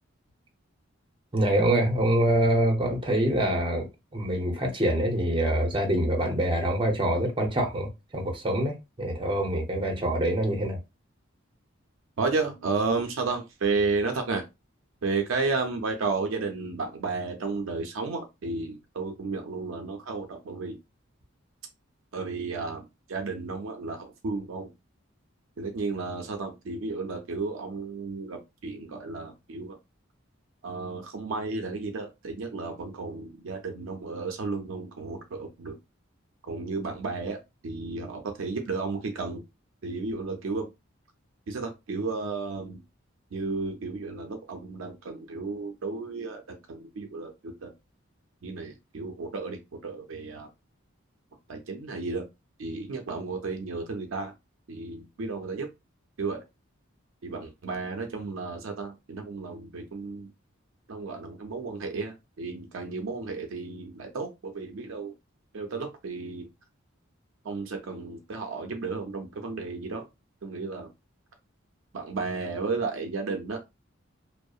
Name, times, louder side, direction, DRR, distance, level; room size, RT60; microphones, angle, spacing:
voice 1, 1.3-3.9 4.1-10.8, right 1 dB, 25° right, 0.7 m, -25 dB
voice 2, 12.2-14.4 15.0-20.8 22.1-24.7 25.6-29.8 30.6-35.8 36.4-39.4 39.8-40.7 41.5-42.8 43.3-47.7 48.4-50.5 51.5-52.3 52.6-54.3 54.7-55.7 56.2-56.4 57.2-60.3 60.9-65.1 65.5-66.5 67.4-70.1 70.4-70.9 71.9-73.6, right 4 dB, 70° right, 0.5 m, -33 dB
2.7 x 2.0 x 2.3 m
head